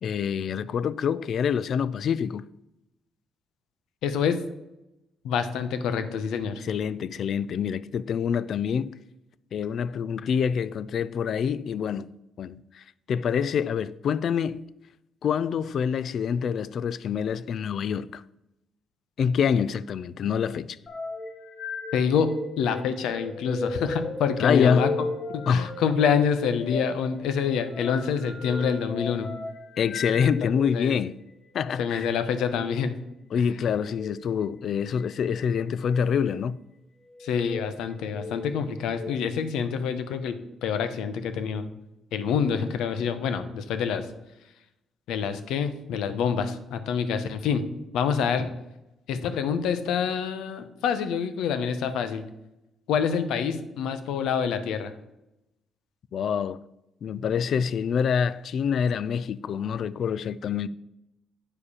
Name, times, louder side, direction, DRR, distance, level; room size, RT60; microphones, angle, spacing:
voice 1, 0.0-2.4 6.6-9.0 9.5-12.1 12.4-14.6 15.2-18.2 19.2-20.8 24.4-24.9 25.5-25.7 29.8-31.2 31.5-32.1 33.3-36.6 56.1-56.6 57.0-60.7, left 7 dB, 60° left, 0.3 m, -26 dB
voice 2, 4.0-4.4 5.2-6.6 21.9-22.3 22.6-24.9 25.3-29.3 30.7-31.0 31.8-33.0 37.2-41.7 42.1-44.1 45.1-47.6 47.9-48.5 49.1-52.2 52.9-54.9, left 7 dB, 85° left, 0.7 m, -26 dB
sound 1, 20.9-30.8 31.6-31.8 33.8-34.2 35.0-35.5 36.0-36.3 37.1-37.6 38.1-39.1, left 3 dB, 40° left, 1.4 m, -36 dB
8.6 x 4.9 x 4.9 m
cardioid pair, 90°, 0 cm